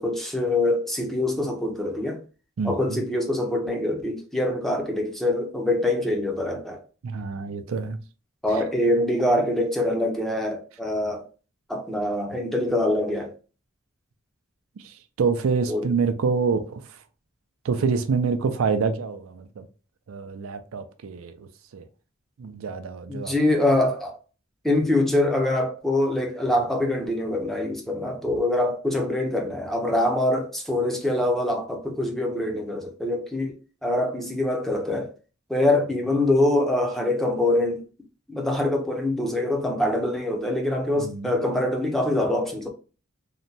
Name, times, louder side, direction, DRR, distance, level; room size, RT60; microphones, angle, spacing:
voice 1, 0.0-2.2 2.6-6.8 8.4-11.3 11.7-13.3 15.7-15.9 23.1-24.2 24.6-35.1 35.5-37.8 38.3-42.7, left 1 dB, ahead, 0.5 m, -24 dB
voice 2, 2.6-3.1 7.0-8.0 14.8-17.0 17.6-19.7 20.1-21.9 22.4-23.3 41.0-41.3, right 5 dB, 80° right, 0.4 m, -27 dB
2.8 x 2.1 x 2.6 m
head